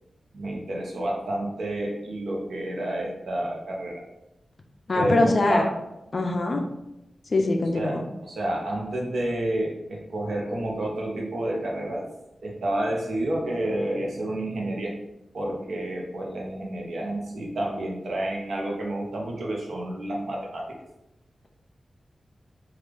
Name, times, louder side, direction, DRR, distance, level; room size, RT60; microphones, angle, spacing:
voice 1, 0.3-4.0 4.9-5.8 7.7-12.1 12.4-15.0 15.3-20.8, right 1 dB, 70° right, -2 dB, 0.7 m, -29 dB
voice 2, 4.9-5.6 6.1-6.6 7.3-8.0, left 2 dB, 40° left, 4 dB, 0.4 m, -23 dB
3.2 x 2.4 x 3.4 m, 0.90 s
wide cardioid pair, 165°, 0 cm